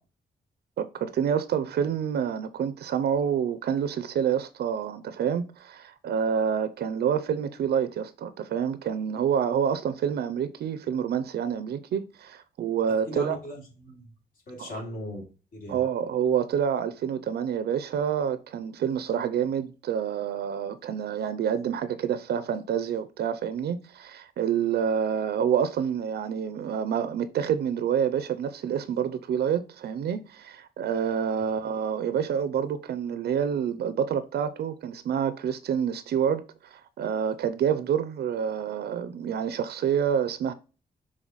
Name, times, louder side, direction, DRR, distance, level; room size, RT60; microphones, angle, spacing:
voice 1, 0.8-13.4 14.6-14.7 15.7-36.4 36.7-40.5, right 8 dB, 80° right, 0.5 m, -28 dB
voice 2, 13.1-14.1 14.5-15.2 15.5-15.8, equal, 55° left, 3.3 m, -38 dB
6.2 x 3.8 x 4.0 m
wide cardioid pair, 160°, 17 cm